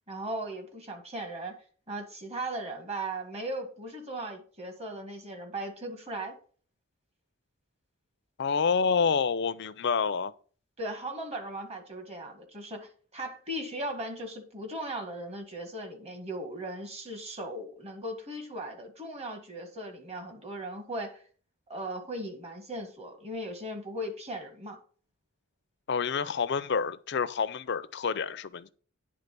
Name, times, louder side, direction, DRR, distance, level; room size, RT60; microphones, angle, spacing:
voice 1, 0.1-1.5 1.9-6.3 10.8-21.2 21.7-24.8, right 1 dB, 30° right, 1.7 m, -38 dB
voice 2, 8.4-10.3 25.9-28.7, left 5 dB, 55° left, 0.5 m, -28 dB
9.7 x 3.7 x 6.7 m
head